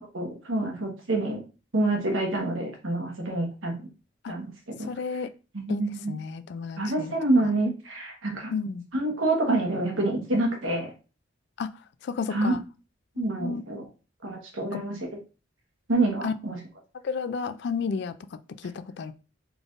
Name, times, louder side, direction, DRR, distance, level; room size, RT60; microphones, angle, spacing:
voice 1, 0.1-1.4 1.7-3.8 4.3-4.5 4.8-4.9 5.5-6.1 6.8-8.5 8.9-10.9 12.3-12.5 13.2-13.8 14.2-15.0 15.9-16.6, right 2 dB, 85° right, 1 dB, 1.2 m, -27 dB
voice 2, 4.8-5.3 5.7-7.2 7.4-7.5 8.5-8.8 11.6-11.7 12.0-12.6 13.2-13.6 14.7-14.8 16.2-16.3 17.0-18.1 18.6-19.1, left 5 dB, 60° left, 13 dB, 0.3 m, -32 dB
4.0 x 3.4 x 2.5 m, 0.33 s
head